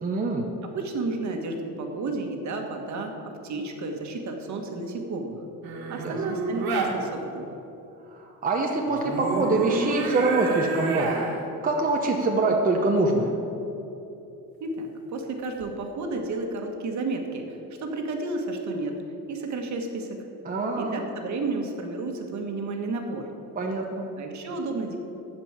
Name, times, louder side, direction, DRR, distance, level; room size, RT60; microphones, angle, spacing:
voice 1, 0.0-0.5 6.0-6.2 8.4-11.2 11.6-13.3 20.4-21.0 23.6-24.1, right 3 dB, 25° right, 0 dB, 1.0 m, -24 dB
voice 2, 0.6-5.4 5.9-7.5 14.6-19.0 19.3-20.2 20.8-23.3 24.2-25.0, right 3 dB, 55° right, 3 dB, 1.6 m, -32 dB
sound 1, 5.6-6.9 8.9-11.4 15.4-15.7, right 3 dB, 90° right, 2.1 m, -30 dB
13.0 x 5.3 x 8.9 m, 2.9 s
cardioid pair, 145°, 35 cm